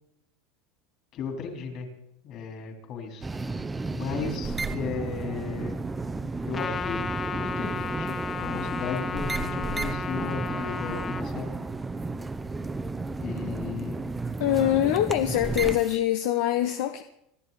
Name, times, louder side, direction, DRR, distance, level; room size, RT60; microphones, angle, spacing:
voice 1, 1.1-1.9 2.2-3.3 3.9-5.8 6.5-7.0 7.3-11.6 13.2-14.0, left 6 dB, 45° left, 3 dB, 3.9 m, -35 dB
sound 1, 3.2-16.0, right 3 dB, 10° right, 0.7 m, -33 dB
Trumpet, 6.5-11.2, left 6 dB, 25° left, 0.6 m, -34 dB
voice 2, 14.4-17.0, left 12 dB, 75° left, 8 dB, 0.9 m, -24 dB
25.5 x 12.5 x 4.2 m, 0.79 s
supercardioid pair, 135°, 0 cm